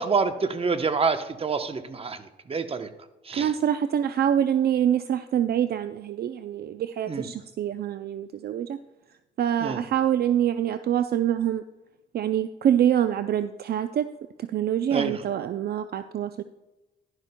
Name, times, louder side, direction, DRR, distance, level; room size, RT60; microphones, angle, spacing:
voice 1, 0.0-2.9 3.2-3.5 7.1-7.3 9.6-9.8 14.9-15.2, right 5 dB, 30° right, 9 dB, 0.9 m, -27 dB
voice 2, 3.3-8.8 9.4-11.6 12.1-14.1 14.4-16.4, right 10 dB, 55° right, 11 dB, 0.4 m, -25 dB
11.5 x 11.0 x 2.2 m, 1.0 s
cardioid pair, 90°, 20 cm